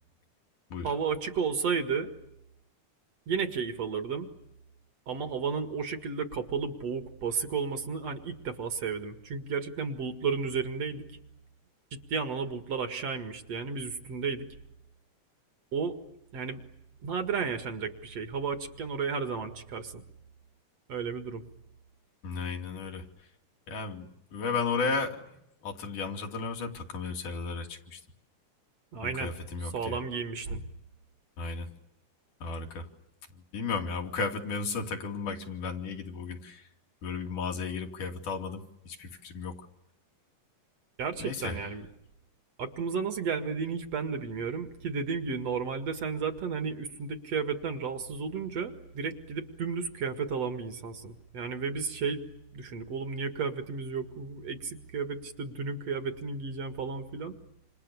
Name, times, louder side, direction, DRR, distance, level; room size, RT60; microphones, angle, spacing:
voice 1, 0.8-2.1 3.3-4.3 5.1-11.0 11.9-14.5 15.7-16.0 16.3-16.6 17.0-20.0 20.9-21.4 28.9-29.3 29.7-30.7 41.0-41.9 42.6-52.2 52.5-57.3, right 5 dB, 55° right, 7 dB, 2.8 m, -33 dB
voice 2, 22.2-23.3 23.7-25.2 25.6-28.0 29.0-30.0 31.4-31.7 32.4-32.9 33.3-36.7 37.0-39.7 41.2-41.7, left 4 dB, 75° left, 3 dB, 4.2 m, -34 dB
28.5 x 28.0 x 7.1 m, 0.83 s
omnidirectional pair, 3.7 m